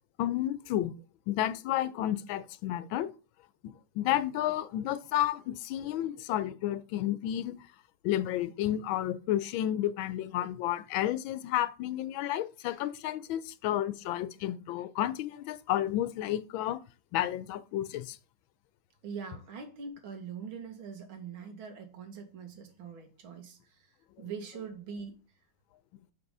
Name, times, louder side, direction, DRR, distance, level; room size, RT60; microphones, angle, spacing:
voice 1, 0.2-0.9 1.3-3.1 3.6-7.5 8.0-16.8 17.1-18.2, left 12 dB, 85° left, 1.4 m, -31 dB
voice 2, 19.0-23.6 24.2-25.1, right 6 dB, 90° right, 2.2 m, -42 dB
6.5 x 5.3 x 5.4 m
omnidirectional pair, 2.1 m